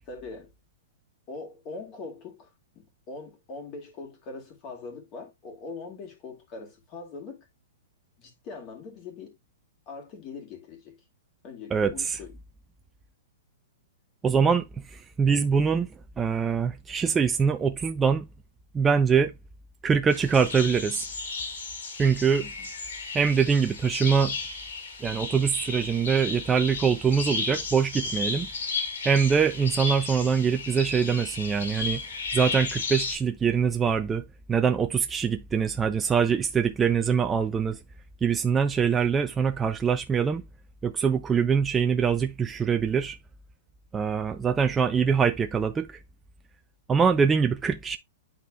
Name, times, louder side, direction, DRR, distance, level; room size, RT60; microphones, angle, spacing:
voice 1, 0.1-0.5 1.3-7.5 8.2-9.4 9.9-11.0 11.4-12.3 22.4-22.7, left 4 dB, 30° left, 2.2 m, -42 dB
voice 2, 11.7-12.2 14.2-15.9 16.2-18.3 18.7-19.3 19.8-21.1 22.0-22.5 23.1-24.4 25.0-28.5 29.0-32.0 32.3-37.8 38.2-40.4 40.8-43.2 43.9-46.0 46.9-48.0, right 6 dB, 15° right, 0.4 m, -24 dB
sound 1, 20.1-33.2, left 4 dB, 85° left, 2.5 m, -34 dB
10.5 x 4.2 x 2.3 m
hypercardioid pair, 150°, 0 cm